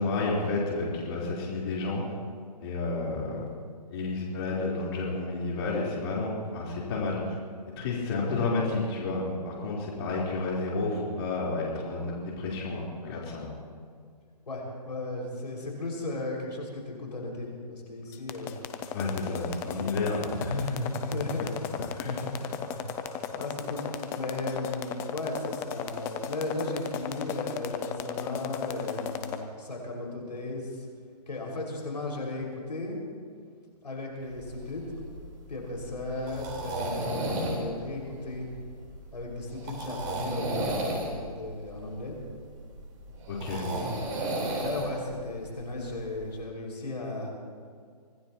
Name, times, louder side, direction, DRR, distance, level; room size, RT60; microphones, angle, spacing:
voice 1, 0.0-2.0 2.6-3.5 3.9-7.3 7.7-13.5 18.9-20.6 22.0-22.2 43.3-43.6, left 3 dB, 35° left, -4 dB, 3.9 m, -31 dB
voice 2, 14.5-18.6 19.6-20.1 20.3-30.9 31.3-33.0 33.8-34.9 35.5-38.5 39.1-42.2 43.6-47.3, left 2 dB, 90° left, -1 dB, 5.6 m, -36 dB
sound 1, 18.1-29.4, left 9 dB, 10° left, 0.5 m, -35 dB
sound 2, 34.3-46.4, right 1 dB, 25° right, 4.2 m, -34 dB
25.0 x 18.0 x 3.0 m, 2.1 s
hypercardioid pair, 150°, 21 cm